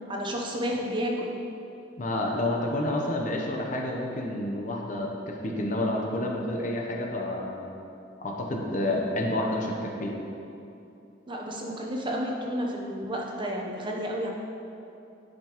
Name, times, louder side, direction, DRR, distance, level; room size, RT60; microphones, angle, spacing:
voice 1, 0.1-1.3 8.8-9.2 11.3-14.3, equal, 25° right, -1 dB, 0.8 m, -31 dB
voice 2, 2.0-7.6 8.2-10.1, left 1 dB, 45° left, 0 dB, 0.8 m, -29 dB
10.5 x 5.2 x 3.0 m, 2.8 s
head